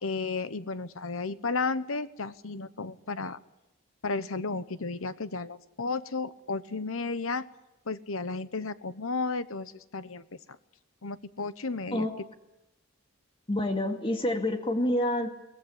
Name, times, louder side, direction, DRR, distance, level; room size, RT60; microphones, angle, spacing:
voice 1, 0.0-3.4 4.0-7.5 7.9-10.2 11.0-12.1, left 4 dB, 75° left, 13 dB, 1.1 m, -33 dB
voice 2, 13.5-15.3, left 1 dB, 25° left, 4 dB, 2.3 m, -27 dB
23.5 x 18.0 x 9.9 m, 0.94 s
head